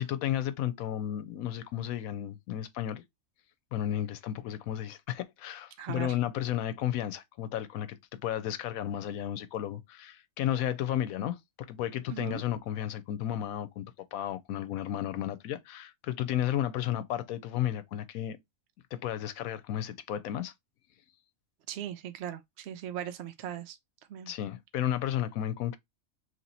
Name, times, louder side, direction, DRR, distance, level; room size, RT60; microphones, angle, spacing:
voice 1, 0.0-3.0 3.7-13.8 14.1-18.4 18.9-20.5 24.3-25.8, left 11 dB, 85° left, 1.1 m, -33 dB
voice 2, 5.8-6.2 12.1-12.4 21.7-23.8 24.1-24.3, right 10 dB, 65° right, 0.7 m, -39 dB
3.0 x 2.9 x 4.0 m
omnidirectional pair, 1.5 m